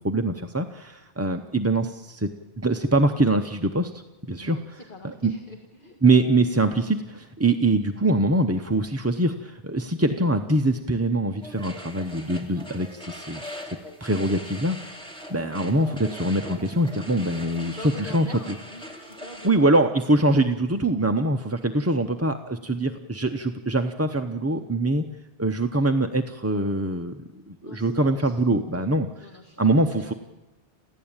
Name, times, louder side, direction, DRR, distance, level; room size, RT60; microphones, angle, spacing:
voice 1, 0.0-2.3 2.6-3.9 4.3-4.8 5.0-5.3 6.0-13.6 14.0-14.8 15.3-18.3 19.4-25.1 25.4-29.1 29.6-30.1, right 2 dB, 15° right, 5 dB, 0.6 m, -23 dB
voice 2, 4.4-6.0 17.6-19.8 27.6-28.4 28.7-28.8 29.2-30.1, left 1 dB, 50° left, 2 dB, 2.1 m, -44 dB
sound 1, 11.4-19.5, equal, 5° left, 2.7 m, -41 dB
28.5 x 15.5 x 8.9 m, 1.1 s
omnidirectional pair, 1.1 m